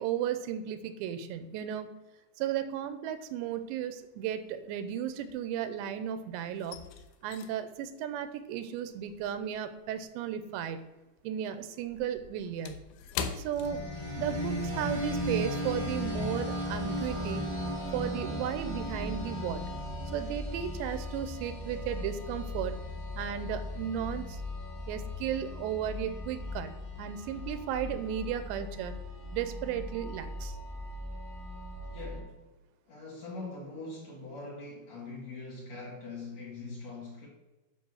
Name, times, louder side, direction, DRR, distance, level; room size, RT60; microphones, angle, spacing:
voice 1, 0.0-1.9 2.4-6.8 7.2-10.8 11.2-12.8 13.4-13.9 14.1-17.4 17.9-19.6 20.1-22.8 23.2-24.4 24.9-26.7 27.0-28.9 29.3-30.6, right 9 dB, 90° right, 11 dB, 2.9 m, -35 dB
sound 1, 3.1-3.7 4.0-6.0 6.2-10.9 11.2-14.5 14.8-15.0 15.5-15.7, left 6 dB, 90° left, 2.1 m, -43 dB
sound 2, 13.5-32.2, left 1 dB, 10° left, 1.1 m, -37 dB
voice 2, 31.9-32.4 32.9-37.3, left 3 dB, 50° left, -5 dB, 2.5 m, -42 dB
9.7 x 3.5 x 6.3 m, 1.1 s
omnidirectional pair, 4.9 m